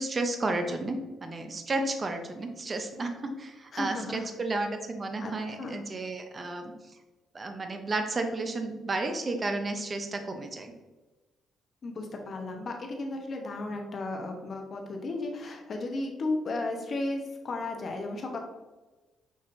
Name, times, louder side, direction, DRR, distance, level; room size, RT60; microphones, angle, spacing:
voice 1, 0.0-6.7 7.3-10.7, right 2 dB, 35° right, 6 dB, 0.6 m, -32 dB
voice 2, 3.7-4.3 5.2-5.8 11.8-18.4, left 2 dB, 45° left, 2 dB, 0.8 m, -34 dB
6.1 x 2.9 x 2.5 m, 1.2 s
cardioid pair, 90°, 0 cm